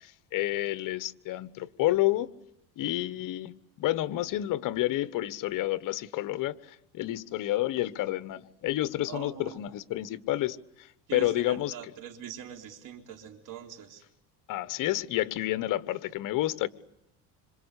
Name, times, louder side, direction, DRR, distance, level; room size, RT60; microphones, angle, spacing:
voice 1, 0.0-2.3 2.8-3.5 3.8-10.9 11.1-11.7 14.5-16.7, left 15 dB, 55° left, 1.2 m, -30 dB
voice 2, 9.1-9.6 11.1-14.0, right 9 dB, 55° right, 3.7 m, -43 dB
26.5 x 26.5 x 8.3 m
cardioid pair, 135°, 39 cm